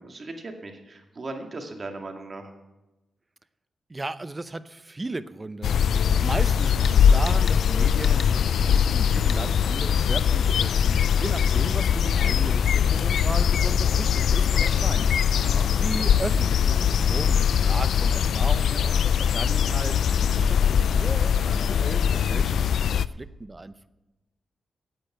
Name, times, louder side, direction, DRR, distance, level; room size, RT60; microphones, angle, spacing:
voice 1, 0.0-2.5 15.4-15.7, right 2 dB, 45° right, 3 dB, 2.1 m, -38 dB
voice 2, 3.9-5.8 6.2-15.4 15.7-23.9, right 2 dB, 25° right, 14 dB, 0.6 m, -36 dB
sound 1, 5.6-23.1, left 8 dB, 80° left, 0.3 m, -21 dB
sound 2, 6.8-7.0 7.3-7.6 8.0-8.3 9.3-9.4, left 5 dB, 55° left, 1.1 m, -37 dB
10.0 x 8.6 x 7.9 m, 1.0 s
cardioid pair, 75°, 0 cm